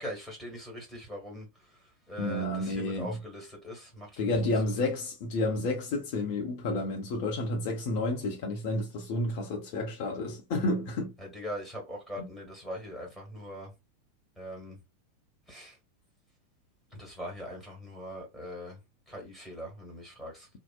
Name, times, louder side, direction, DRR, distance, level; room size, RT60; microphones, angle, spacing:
voice 1, 0.0-1.5 2.1-4.3 4.6-4.7 11.2-13.7 14.4-14.8 15.5-15.8 16.9-18.8 19.1-20.5, equal, 5° right, 1.5 m, -41 dB
voice 2, 2.2-3.2 4.2-11.1 12.2-12.3, left 2 dB, 45° left, 0.7 m, -30 dB
2.7 x 2.0 x 2.2 m
figure-of-eight pair, 90°, 0 cm